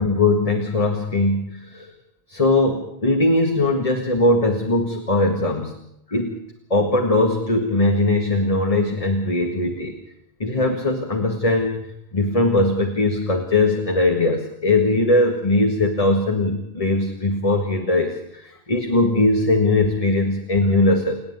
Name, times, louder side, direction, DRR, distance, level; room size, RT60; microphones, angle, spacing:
voice 1, 0.0-1.9 2.3-5.7 6.1-6.4 6.7-9.9 10.4-11.8 12.1-21.2, left 2 dB, 35° left, 4 dB, 1.9 m, -20 dB
30.0 x 10.0 x 9.5 m, 0.81 s
omnidirectional pair, 1.0 m